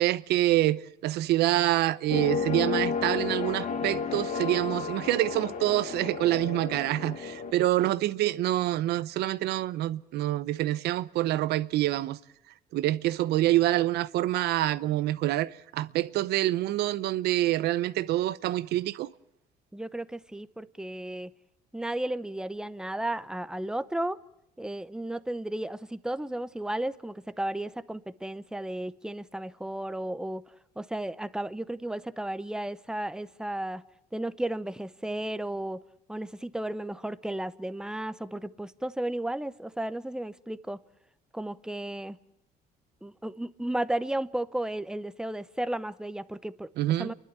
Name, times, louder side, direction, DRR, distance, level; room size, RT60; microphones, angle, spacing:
voice 1, 0.0-12.2 12.7-19.1 46.8-47.1, right 15 dB, 80° right, 0.8 m, -26 dB
sound 1, 2.1-7.5, left 6 dB, 50° left, 1.9 m, -32 dB
voice 2, 19.7-21.3 21.7-24.2 24.6-30.4 30.8-33.8 34.1-35.8 36.1-40.8 41.3-42.2 43.0-46.7 47.0-47.1, right 1 dB, 5° right, 0.8 m, -34 dB
29.5 x 11.5 x 9.8 m
cardioid pair, 110°, 17 cm